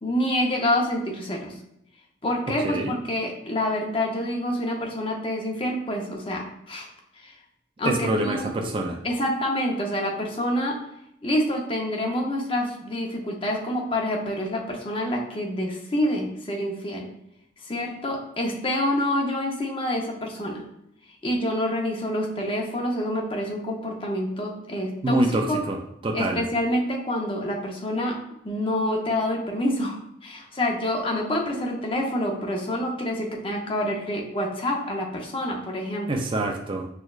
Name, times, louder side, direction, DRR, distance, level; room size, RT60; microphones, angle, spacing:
voice 1, 0.0-1.5 2.2-6.9 7.2-7.3 7.8-8.5 9.0-10.8 11.2-17.1 17.6-20.6 21.2-25.6 26.1-28.2 28.4-36.1, left 1 dB, 30° left, 0 dB, 0.6 m, -27 dB
voice 2, 2.6-3.0 7.8-9.0 25.0-25.8 26.0-26.4 36.1-36.9, right 1 dB, 25° right, 2 dB, 0.3 m, -25 dB
6.2 x 2.2 x 2.3 m, 0.80 s
head